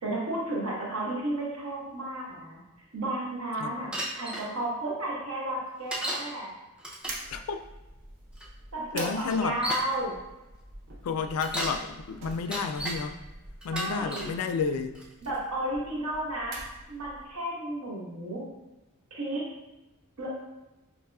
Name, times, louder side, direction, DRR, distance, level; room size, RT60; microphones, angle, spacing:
voice 1, 0.0-2.6 2.9-6.5 8.7-10.2 13.7-14.3 15.2-16.6 16.9-18.4 19.1-19.4 20.2-20.3, right 1 dB, 75° right, -4 dB, 1.1 m, -33 dB
Bicycle, 3.9-4.5 5.9-6.3 6.8-7.3 8.4-8.5 9.2-9.9 11.2-11.8 12.3-13.0 13.6-14.3 15.0-15.4, right 1 dB, 5° right, 0.4 m, -34 dB
sound 1, 7.0-17.4, right 2 dB, 55° right, 0.6 m, -46 dB
voice 2, 7.3-7.6 8.9-9.6 11.0-13.2 13.6-15.0, left 5 dB, 80° left, 8 dB, 0.3 m, -31 dB
4.7 x 2.9 x 2.3 m, 1.0 s
head